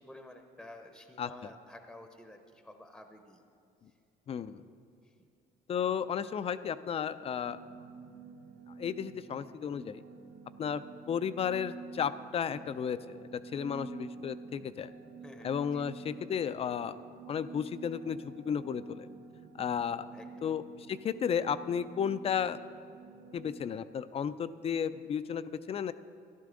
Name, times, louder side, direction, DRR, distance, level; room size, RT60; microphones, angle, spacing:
voice 1, 0.0-3.4 15.2-15.9 19.8-20.5, left 1 dB, ahead, 6 dB, 0.7 m, -51 dB
voice 2, 1.2-1.5 4.3-4.6 5.7-7.6 8.8-10.0 10.6-10.8 11.1-14.9 15.4-17.0 17.3-19.1 19.6-20.1 20.4-22.6 23.3-25.9, left 7 dB, 35° left, 14 dB, 0.4 m, -33 dB
sound 1, 7.4-23.6, right 4 dB, 90° right, 1.1 m, -49 dB
14.0 x 11.0 x 3.8 m, 2.4 s
cardioid pair, 110°, 17 cm